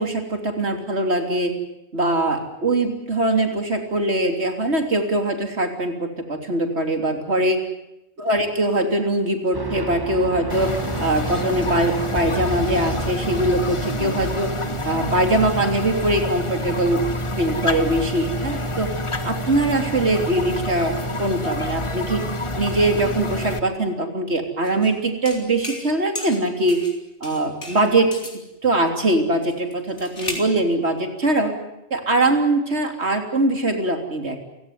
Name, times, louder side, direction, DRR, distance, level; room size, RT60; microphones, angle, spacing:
voice 1, 0.0-1.5 1.9-7.6 8.2-10.7 11.0-14.5 14.8-17.0 17.4-18.9 19.2-22.3 22.6-26.8 27.2-28.1 28.6-31.6 31.9-34.4, right 1 dB, 65° right, 5 dB, 3.6 m, -22 dB
sound 1, 9.5-15.9, right 2 dB, 20° right, 1.7 m, -34 dB
sound 2, 10.5-23.6, left 1 dB, 25° left, 1.4 m, -27 dB
sound 3, 24.6-24.9 25.2-25.9 26.1-27.0 27.2-28.4 29.4-30.5, left 2 dB, 75° left, 4.5 m, -34 dB
29.5 x 16.5 x 9.6 m, 0.88 s
omnidirectional pair, 1.2 m